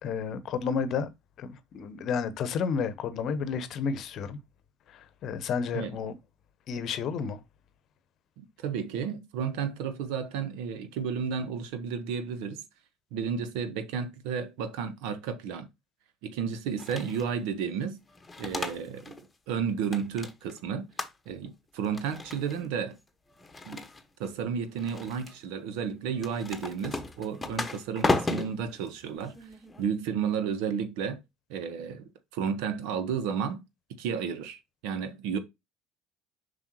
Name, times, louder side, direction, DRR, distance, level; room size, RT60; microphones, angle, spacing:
voice 1, 0.0-1.1 1.4-4.4 4.9-6.1 6.7-7.4, left 6 dB, 45° left, 0.9 m, -31 dB
voice 2, 8.4-12.6 13.1-15.7 16.2-18.0 18.4-19.2 19.5-20.9 21.3-23.0 23.7-23.8 24.2-29.4 29.8-31.2 31.5-33.6 34.0-35.4, right 7 dB, 60° right, 1.0 m, -32 dB
sound 1, 16.8-17.3 18.1-19.2 19.5-20.6 21.0-21.5 21.8-22.6 23.4-24.3 24.8-25.4 26.2-29.8, left 2 dB, 15° left, 1.2 m, -34 dB
7.1 x 5.3 x 2.9 m
figure-of-eight pair, 60°, 0 cm